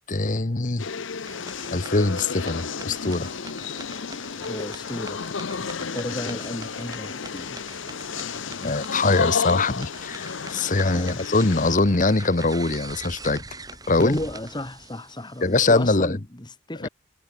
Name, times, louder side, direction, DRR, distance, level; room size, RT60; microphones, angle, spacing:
voice 1, 0.1-0.9 1.7-3.3 8.6-13.4 13.9-14.2 15.4-16.2 16.8-16.9, left 3 dB, 40° left, 1.0 m, -22 dB
sound 1, 0.8-11.8, left 5 dB, 65° left, 0.8 m, -32 dB
sound 2, 1.2-16.0, right 3 dB, 20° right, 4.7 m, -43 dB
voice 2, 3.9-5.3 5.6-7.6 10.8-11.2 14.0-16.9, left 1 dB, 20° left, 1.7 m, -34 dB
head